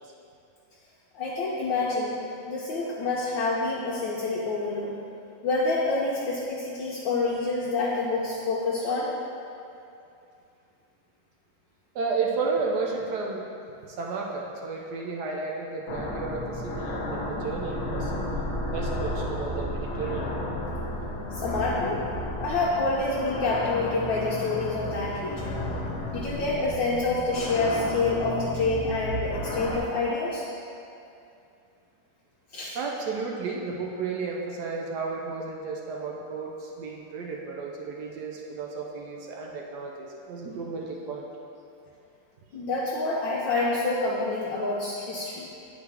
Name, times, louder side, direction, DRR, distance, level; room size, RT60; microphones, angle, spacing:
voice 1, 1.1-2.2 2.5-4.9 5.4-9.1 21.3-22.0 22.4-25.6 26.1-30.5 32.5-32.8 42.5-45.4, left 3 dB, 70° left, -5 dB, 1.3 m, -27 dB
voice 2, 11.9-13.5 13.8-18.1 18.7-20.3 32.7-41.3, right 4 dB, 70° right, -1 dB, 0.9 m, -32 dB
sound 1, 15.9-29.8, left 1 dB, 85° left, 0.6 m, -32 dB
9.2 x 4.7 x 3.4 m, 2.6 s
omnidirectional pair, 2.4 m